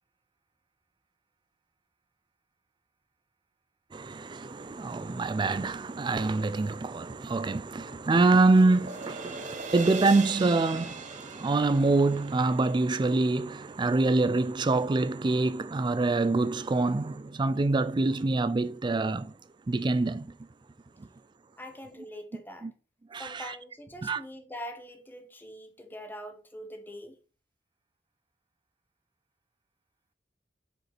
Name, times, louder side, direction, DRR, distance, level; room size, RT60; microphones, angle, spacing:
voice 1, 3.9-19.3 19.7-20.3 22.6-22.7 23.1-23.5 24.0-24.2, right 3 dB, 25° right, 0.4 m, -25 dB
sound 1, 7.8-13.6, right 4 dB, 45° right, 0.9 m, -42 dB
voice 2, 21.6-22.7 23.2-27.2, equal, 10° left, 0.9 m, -43 dB
5.1 x 4.5 x 4.0 m
head